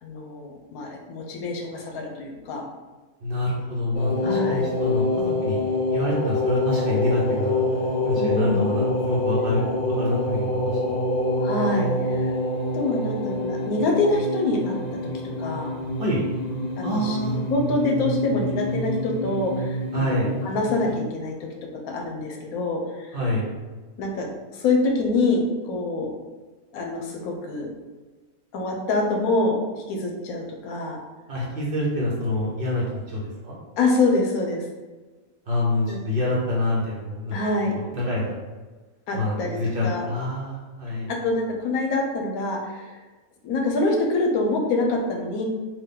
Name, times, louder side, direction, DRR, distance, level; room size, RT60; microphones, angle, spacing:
voice 1, 0.0-2.7 4.2-4.7 8.2-8.6 11.4-12.3 12.7-14.8 15.4-15.7 16.8-21.5 21.9-23.2 24.0-26.1 26.7-27.7 28.5-29.6 29.9-31.0 33.8-34.7 35.9-36.0 37.3-37.7 39.1-40.1 41.1-43.0 43.4-45.4, left 2 dB, 85° left, 1 dB, 1.1 m, -25 dB
voice 2, 3.2-5.6 5.9-7.6 8.0-11.0 16.0-16.2 16.8-17.4 19.9-20.3 23.1-23.5 31.3-33.5 35.5-37.4 37.7-38.4 39.1-41.1, left 1 dB, 50° right, -4 dB, 0.7 m, -26 dB
sound 1, 3.9-21.0, left 1 dB, 50° left, 0.5 m, -26 dB
3.8 x 2.3 x 3.6 m, 1.3 s
omnidirectional pair, 1.5 m